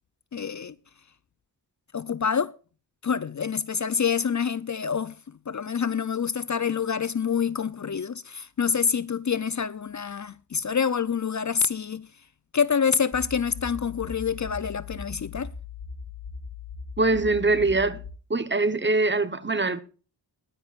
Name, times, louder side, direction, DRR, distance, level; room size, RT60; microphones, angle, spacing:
voice 1, 0.3-0.7 1.9-2.5 3.0-12.1 12.5-15.5, left 6 dB, 45° left, 0.6 m, -27 dB
sound 1, 13.1-18.1, left 5 dB, 30° left, 5.1 m, -39 dB
voice 2, 17.0-18.0 18.3-19.8, right 3 dB, 25° right, 1.0 m, -23 dB
20.5 x 10.0 x 2.5 m
wide cardioid pair, 120°, 41 cm